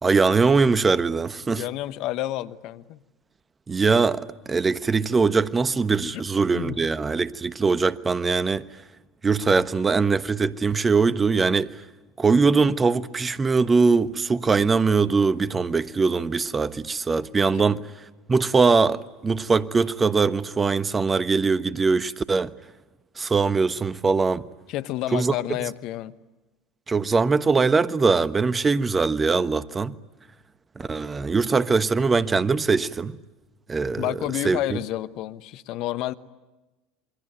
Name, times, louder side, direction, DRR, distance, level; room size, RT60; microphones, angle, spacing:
voice 1, 0.0-1.6 3.7-8.7 9.2-11.7 12.2-17.8 18.3-22.5 23.2-24.4 25.1-25.3 26.9-29.9 30.8-33.2 33.7-34.1 34.4-34.8, right 4 dB, 25° right, 1.2 m, -22 dB
voice 2, 1.5-3.0 6.1-6.2 6.5-6.9 24.7-26.2 34.0-36.1, left 14 dB, 55° left, 1.1 m, -30 dB
28.0 x 22.5 x 9.1 m
hypercardioid pair, 75°, 0 cm